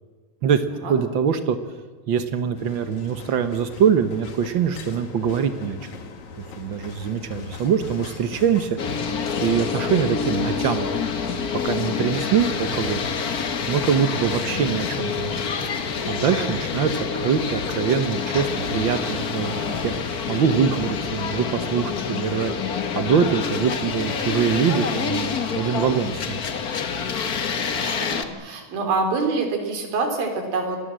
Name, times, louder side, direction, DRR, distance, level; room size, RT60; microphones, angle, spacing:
voice 1, 0.9-1.6 2.1-5.9 6.4-8.8 9.4-13.0 13.7-15.4 16.1-19.9 20.3-22.5 22.9-26.4, right 7 dB, 70° right, 9 dB, 1.1 m, -23 dB
sound 1, 2.6-20.1, left 4 dB, 60° left, 3.3 m, -41 dB
sound 2, 8.8-28.2, left 6 dB, 75° left, 0.8 m, -27 dB
voice 2, 16.2-16.5 27.7-30.8, right 3 dB, 90° right, 4 dB, 5.3 m, -26 dB
28.5 x 21.0 x 7.6 m, 1.4 s
omnidirectional pair, 4.0 m